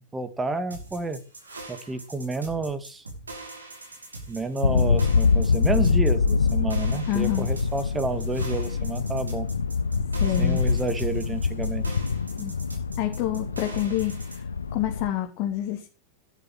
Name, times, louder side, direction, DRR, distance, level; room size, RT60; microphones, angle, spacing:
voice 1, 0.1-1.2 1.7-3.0 4.3-9.5 10.4-11.8, right 3 dB, 10° right, 10 dB, 2.1 m, -30 dB
sound 1, 0.7-14.4, right 2 dB, 80° right, 6.8 m, -42 dB
sound 2, 4.6-15.1, left 5 dB, 75° left, 0.9 m, -25 dB
voice 2, 7.1-7.5 10.2-10.6 12.4-12.5 13.0-14.1 14.7-15.9, left 12 dB, 40° left, 2 dB, 2.8 m, -27 dB
12.5 x 11.5 x 6.2 m, 0.35 s
figure-of-eight pair, 90°, 0 cm